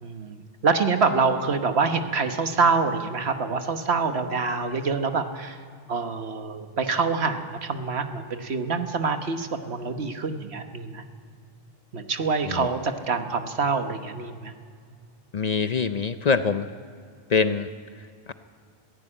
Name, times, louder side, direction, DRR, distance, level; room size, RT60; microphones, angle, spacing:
voice 1, 0.0-5.6 5.9-11.0 11.9-14.5, right 4 dB, 80° right, 7 dB, 1.5 m, -26 dB
voice 2, 15.3-16.7 17.3-17.7, left 5 dB, 45° left, 11 dB, 0.6 m, -24 dB
21.0 x 15.0 x 8.8 m, 2.1 s
omnidirectional pair, 1.1 m